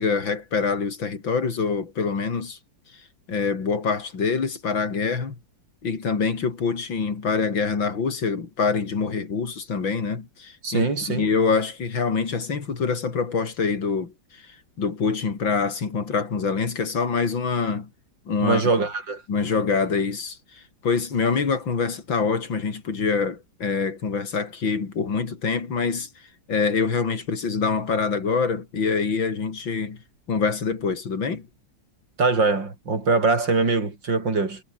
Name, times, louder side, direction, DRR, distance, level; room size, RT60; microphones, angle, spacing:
voice 1, 0.0-2.6 3.3-5.4 5.8-17.9 18.3-18.6 19.3-26.1 26.5-30.0 30.3-31.5, left 5 dB, 85° left, 3.8 m, -25 dB
voice 2, 10.6-11.2 18.4-19.2 32.2-34.6, right 3 dB, 70° right, 5.0 m, -22 dB
omnidirectional pair, 2.0 m